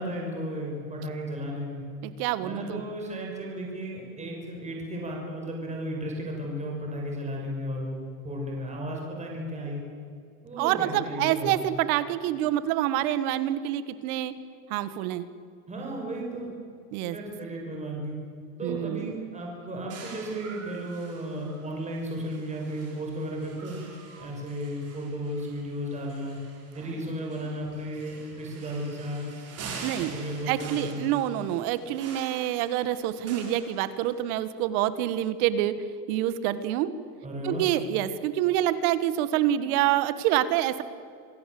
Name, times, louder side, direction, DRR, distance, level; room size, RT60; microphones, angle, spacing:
voice 1, 0.0-1.8 2.4-9.8 10.4-11.7 15.7-16.5 17.1-18.2 18.6-23.8 24.2-26.4 26.7-29.3 30.0-31.0 37.2-37.6, equal, 15° right, -1 dB, 6.0 m, -34 dB
voice 2, 2.0-2.8 10.6-14.3 14.7-15.3 16.9-17.2 18.6-19.1 29.8-30.1 30.5-35.8 36.1-36.9 37.4-40.8, right 12 dB, 60° right, 14 dB, 1.7 m, -27 dB
sound 1, 19.9-34.4, right 4 dB, 30° right, 5.4 m, -46 dB
27.0 x 17.5 x 7.8 m, 2.2 s
supercardioid pair, 140°, 50 cm